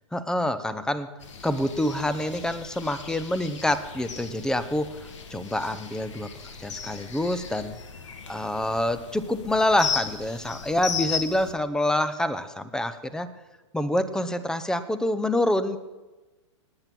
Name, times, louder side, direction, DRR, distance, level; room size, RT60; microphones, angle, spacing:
voice 1, 0.1-1.1 1.4-6.3 6.6-7.7 8.3-13.3 13.7-15.8, left 1 dB, 5° left, 13 dB, 0.8 m, -26 dB
sound 1, 1.2-11.5, left 6 dB, 75° left, 2.1 m, -36 dB
18.5 x 9.1 x 6.0 m, 1.2 s
hypercardioid pair, 130°, 16 cm